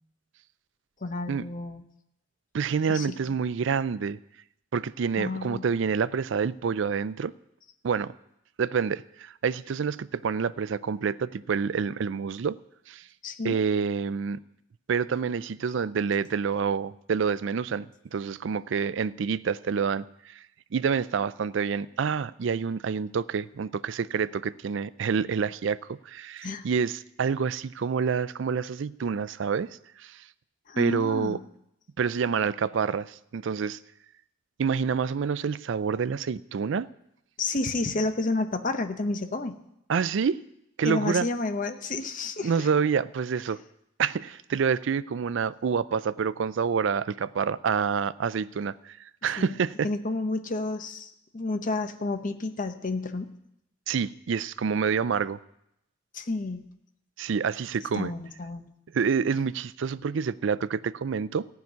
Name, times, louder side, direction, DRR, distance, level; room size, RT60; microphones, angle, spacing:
voice 1, 1.0-1.8 2.9-3.2 5.2-5.7 13.2-13.6 26.4-26.6 30.7-31.4 37.4-39.6 40.8-42.7 49.4-49.6 49.8-53.3 56.1-56.6 57.9-58.6, left 2 dB, 40° left, 8 dB, 0.8 m, -30 dB
voice 2, 2.5-4.2 4.7-7.3 7.8-8.1 8.6-12.6 12.9-13.0 13.4-14.4 14.9-20.4 20.7-29.7 30.0-30.2 30.8-31.4 32.0-33.8 34.6-36.9 39.9-40.4 40.8-41.3 42.4-43.6 44.0-49.9 53.9-55.4 57.2-58.1 58.9-61.5, right 6 dB, 65° right, 17 dB, 0.4 m, -27 dB
15.0 x 5.9 x 9.4 m, 0.80 s
head